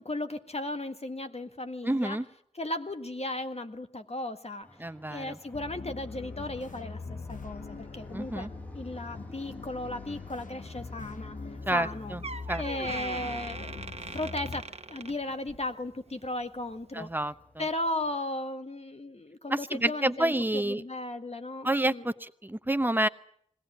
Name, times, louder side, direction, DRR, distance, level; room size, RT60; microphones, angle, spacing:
voice 1, 0.0-2.2 2.5-4.7 5.1-7.0 7.3-8.5 8.7-11.4 11.7-12.1 12.6-13.8 14.1-17.1 17.6-22.1, left 2 dB, 50° left, 7 dB, 1.6 m, -36 dB
voice 2, 1.8-2.2 4.8-5.4 8.1-8.5 11.7-12.2 12.5-12.6 16.9-17.3 19.5-20.8 21.6-23.1, right 1 dB, 15° right, 11 dB, 0.9 m, -28 dB
Fixed-wing aircraft airplane, 4.6-18.1, left 1 dB, 10° left, 1.5 m, -51 dB
sound 1, 5.5-14.6, left 4 dB, 85° left, 1.0 m, -42 dB
Door, 11.8-11.9 12.2-15.7 16.1-16.4 17.1-17.2, right 3 dB, 50° right, 1.2 m, -40 dB
21.0 x 17.5 x 9.0 m, 0.65 s
wide cardioid pair, 60°, 13 cm